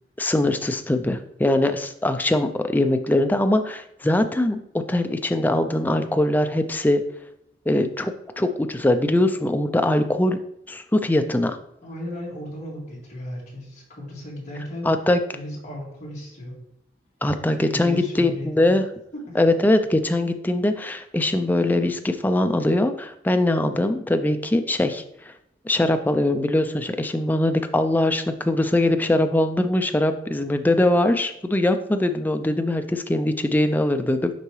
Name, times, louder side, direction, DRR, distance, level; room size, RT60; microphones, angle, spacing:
voice 1, 0.2-4.6 4.9-7.0 7.7-10.4 10.7-11.6 14.8-15.2 17.2-18.8 19.3-25.3 25.6-34.3, left 1 dB, 10° left, 7 dB, 0.3 m, -22 dB
voice 2, 11.8-14.9 15.3-16.6 17.5-18.7 19.1-19.4, left 1 dB, 40° left, -5 dB, 2.1 m, -35 dB
6.7 x 4.5 x 3.1 m, 0.77 s
head